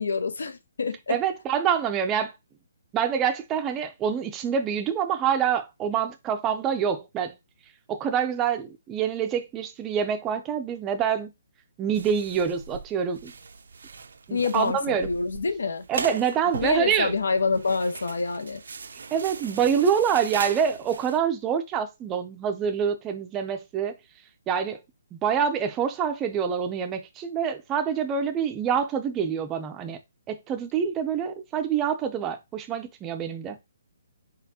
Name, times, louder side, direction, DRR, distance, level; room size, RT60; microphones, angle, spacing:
voice 1, 0.0-1.2 14.3-15.8 16.6-18.6, left 4 dB, 90° left, 0.9 m, -27 dB
voice 2, 1.1-2.3 2.9-7.3 7.9-11.3 11.8-13.3 14.3-15.1 15.9-17.1 19.1-23.9 24.5-24.8 25.1-30.0 30.3-33.6, right 7 dB, 15° right, 0.4 m, -26 dB
sound 1, 11.9-21.2, right 5 dB, 75° right, 0.5 m, -39 dB
4.2 x 3.9 x 2.8 m
hypercardioid pair, 170°, 0 cm